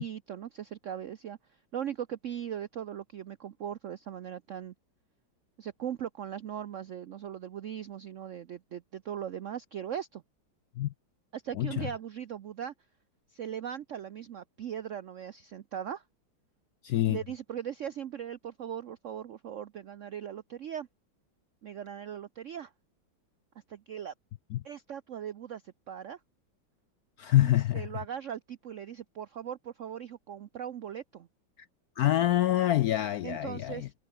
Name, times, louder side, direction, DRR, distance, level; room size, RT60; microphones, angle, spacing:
voice 1, 0.0-1.4 1.7-4.7 5.6-10.2 11.3-12.7 13.3-16.0 17.1-20.9 21.6-22.7 23.7-24.1 24.6-26.2 27.4-31.3 33.2-33.9, right 9 dB, 75° right, 0.7 m, -39 dB
voice 2, 11.5-11.9 16.8-17.2 24.5-24.6 27.2-27.9 32.0-33.9, left 14 dB, 75° left, 0.8 m, -26 dB
omnidirectional pair, 2.1 m